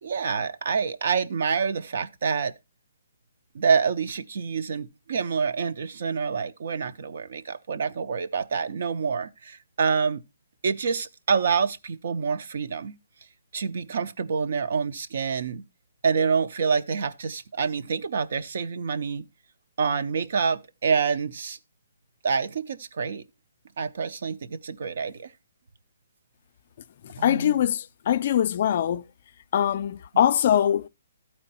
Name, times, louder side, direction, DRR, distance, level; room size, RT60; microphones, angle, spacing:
voice 1, 0.0-2.5 3.5-10.2 10.6-13.0 13.5-15.6 16.0-19.2 19.8-21.6 22.2-23.2 23.8-25.3 27.2-27.6, right 5 dB, 60° right, 0.6 m, -27 dB
voice 2, 27.2-29.0 29.5-30.9, left 10 dB, 45° left, 0.4 m, -22 dB
12.5 x 4.4 x 4.1 m
hypercardioid pair, 160°, 0 cm